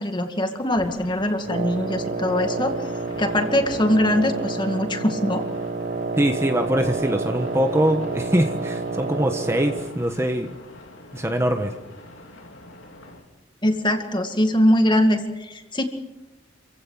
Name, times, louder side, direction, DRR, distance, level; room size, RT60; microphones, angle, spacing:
voice 1, 0.0-2.8 3.2-5.4 13.6-15.8, left 1 dB, 25° left, 6 dB, 2.2 m, -22 dB
sound 1, 0.7-13.2, left 1 dB, 75° left, 3.6 m, -43 dB
Wind instrument woodwind instrument, 1.4-10.0, right 3 dB, 45° right, 0.7 m, -29 dB
voice 2, 6.2-10.6 11.1-11.7, right 1 dB, 15° right, 5 dB, 1.3 m, -23 dB
27.5 x 16.0 x 7.4 m, 1.1 s
head